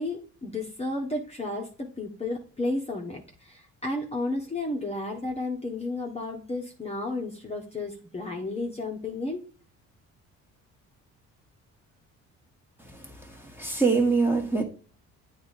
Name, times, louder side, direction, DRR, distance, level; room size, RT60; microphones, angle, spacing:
voice 1, 0.0-9.4, left 2 dB, 20° left, 1.2 m, -32 dB
voice 2, 13.6-14.6, right 4 dB, 5° right, 1.4 m, -23 dB
8.5 x 2.9 x 4.1 m
supercardioid pair, 80°, 34 cm